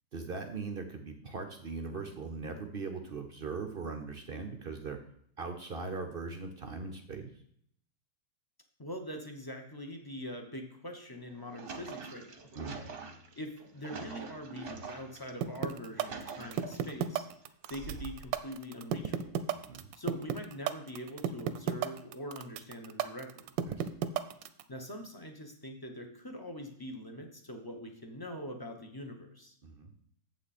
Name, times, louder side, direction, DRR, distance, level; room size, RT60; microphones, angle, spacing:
voice 1, 0.1-5.0 5.4-7.3 12.6-12.8 19.6-19.9 23.7-23.9 29.6-29.9, right 4 dB, 60° right, 6 dB, 0.6 m, -40 dB
voice 2, 8.8-12.5 13.4-17.3 17.7-19.3 20.0-23.5 24.7-29.6, equal, 20° left, 4 dB, 0.5 m, -43 dB
sound 1, 11.2-15.3 15.8-17.0 17.7-18.4, right 4 dB, 40° right, 0.9 m, -45 dB
sound 2, 15.4-24.6, right 10 dB, 85° right, 1.3 m, -32 dB
8.3 x 7.5 x 4.2 m, 0.67 s
omnidirectional pair, 1.9 m